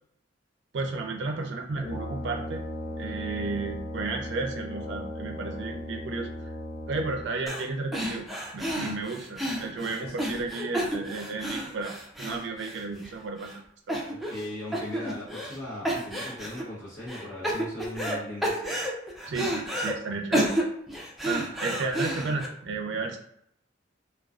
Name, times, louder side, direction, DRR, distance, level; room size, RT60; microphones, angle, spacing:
voice 1, 0.7-2.6 3.0-6.3 6.9-8.3 8.5-13.5 13.9-14.0 19.3-20.5 21.2-23.2, right 3 dB, 70° right, 2 dB, 0.4 m, -33 dB
Brass instrument, 1.7-7.5, left 1 dB, 45° left, 1.2 m, -37 dB
woman run and breath, 7.5-7.7 7.9-13.1 13.4-13.5 13.9-14.5 14.7-15.6 15.8-16.6 17.1-18.2 18.4-19.9 20.3-22.5, right 1 dB, ahead, 0.4 m, -31 dB
voice 2, 14.3-18.6, left 1 dB, 75° left, -8 dB, 0.8 m, -38 dB
2.4 x 2.2 x 2.3 m, 0.72 s
head